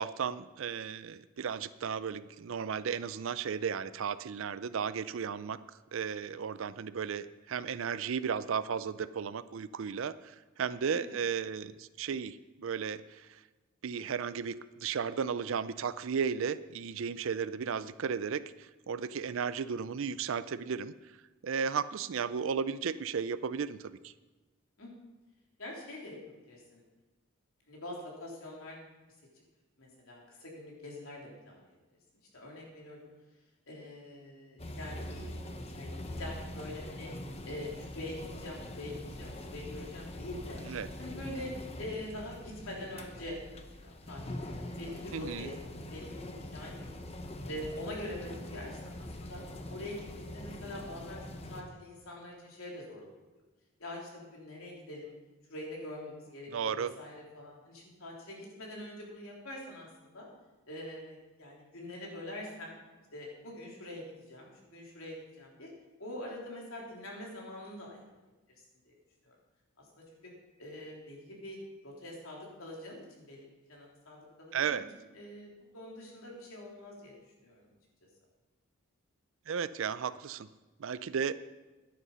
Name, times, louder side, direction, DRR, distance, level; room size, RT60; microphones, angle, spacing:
voice 1, 0.0-5.6 5.9-13.4 13.8-20.9 21.4-24.1 40.6-40.9 45.1-45.5 56.5-56.9 74.5-74.9 79.5-80.5 80.8-81.3, right 6 dB, 65° right, 15 dB, 0.4 m, -34 dB
voice 2, 25.6-26.2 26.4-26.8 27.7-28.8 29.8-31.8 32.3-33.1 33.7-37.1 37.4-40.6 41.0-43.4 43.8-45.5 45.9-47.0 47.5-49.4 49.7-53.1 53.8-55.1 55.5-60.3 60.7-62.7 63.1-65.7 66.0-68.0 68.8-69.0 69.2-69.4 69.8-70.3 70.6-71.6 71.8-74.8 75.1-77.1 77.4-77.7, left 1 dB, 75° left, -2 dB, 3.4 m, -44 dB
sound 1, 34.6-51.6, left 1 dB, 30° left, 0.8 m, -43 dB
11.0 x 9.7 x 5.5 m, 1.2 s
head